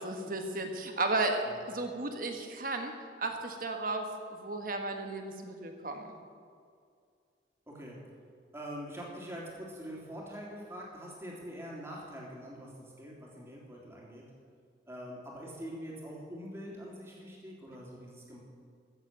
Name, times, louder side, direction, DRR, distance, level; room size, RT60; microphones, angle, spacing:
voice 1, 0.0-2.9 3.2-6.1, right 2 dB, 50° right, 4 dB, 1.4 m, -34 dB
voice 2, 7.7-8.0 8.5-14.2 14.9-18.4, equal, 15° right, -4 dB, 3.0 m, -44 dB
15.0 x 7.7 x 7.5 m, 2.2 s
head